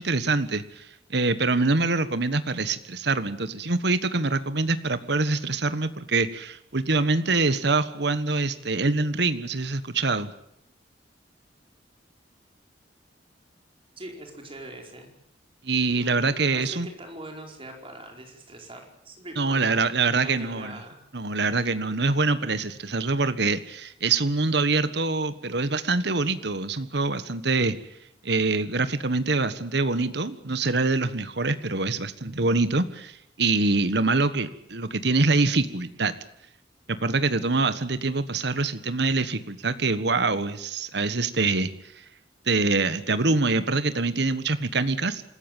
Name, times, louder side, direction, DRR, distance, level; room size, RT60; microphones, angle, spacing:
voice 1, 0.0-10.3 15.6-16.9 19.4-20.8 21.1-27.8 28.2-36.1 36.9-42.0 42.5-45.2, right 3 dB, 70° right, 13 dB, 1.4 m, -25 dB
voice 2, 14.0-15.1 15.9-19.8 20.2-21.1, right 1 dB, 30° right, 3 dB, 4.8 m, -42 dB
26.5 x 14.5 x 9.1 m, 0.77 s
head